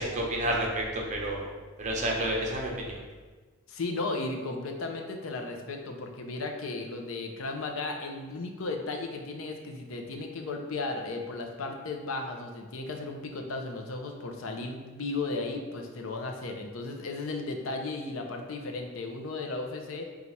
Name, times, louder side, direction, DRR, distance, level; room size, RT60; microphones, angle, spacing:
voice 1, 0.0-1.5 1.8-2.9, right 1 dB, 35° right, -1 dB, 0.7 m, -30 dB
voice 2, 3.7-20.1, left 3 dB, 75° left, 3 dB, 0.5 m, -35 dB
4.0 x 2.4 x 4.5 m, 1.4 s
head